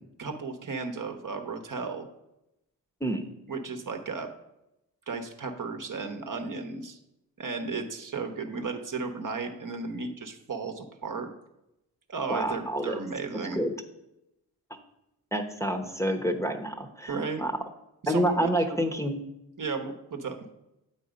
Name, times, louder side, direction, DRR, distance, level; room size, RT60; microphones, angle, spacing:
voice 1, 0.2-2.1 3.5-4.3 5.1-7.0 7.4-11.3 12.1-13.6 17.1-17.5 18.0-18.8 19.6-20.4, right 4 dB, 45° right, 5 dB, 1.0 m, -34 dB
voice 2, 12.3-12.9 13.3-13.7 15.3-17.6 18.1-19.2, equal, 5° left, 2 dB, 1.0 m, -28 dB
7.8 x 4.3 x 5.1 m, 0.88 s
supercardioid pair, 45°, 42 cm